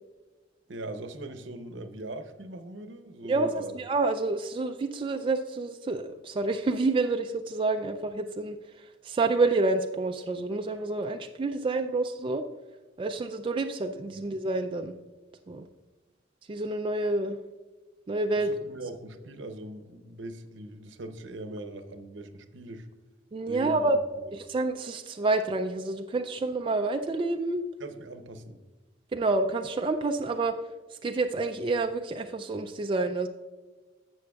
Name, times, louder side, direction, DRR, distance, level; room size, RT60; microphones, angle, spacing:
voice 1, 0.7-3.7 14.1-14.3 18.3-22.9 23.5-24.0 27.8-28.6, right 2 dB, 70° right, 8 dB, 0.7 m, -41 dB
voice 2, 3.3-12.5 13.0-14.9 15.5-15.6 16.5-17.4 18.1-18.5 23.3-24.0 24.3-27.6 29.1-30.5 30.9-33.3, right 3 dB, 25° right, 5 dB, 0.3 m, -28 dB
11.5 x 7.6 x 2.3 m, 1.3 s
head